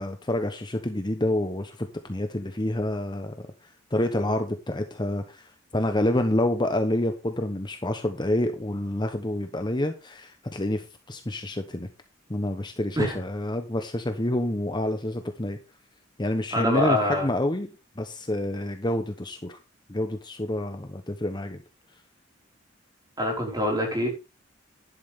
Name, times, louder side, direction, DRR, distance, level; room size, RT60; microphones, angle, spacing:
voice 1, 0.0-3.3 3.9-5.4 5.7-11.9 12.3-15.6 16.2-17.7 18.0-19.6 19.9-21.6, left 1 dB, 20° left, 6 dB, 1.0 m, -28 dB
voice 2, 16.5-17.3 23.2-24.1, left 1 dB, 20° right, 0 dB, 5.2 m, -25 dB
11.5 x 11.0 x 3.7 m, 0.30 s
head